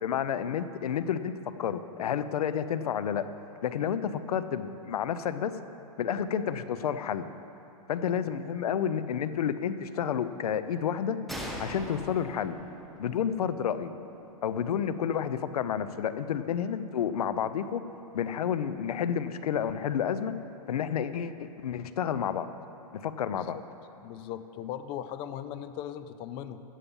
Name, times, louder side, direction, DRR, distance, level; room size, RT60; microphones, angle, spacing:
voice 1, 0.0-3.2 3.6-5.6 6.0-7.3 7.9-11.2 11.6-12.6 13.0-13.9 14.4-17.8 18.1-20.3 20.7-22.6 22.9-23.6, left 8 dB, 85° left, 12 dB, 0.7 m, -30 dB
sound 1, 11.3-14.8, equal, ahead, 1.0 m, -42 dB
voice 2, 24.0-26.6, left 10 dB, 25° left, 11 dB, 0.4 m, -38 dB
14.5 x 8.4 x 5.5 m, 2.9 s
hypercardioid pair, 150°, 19 cm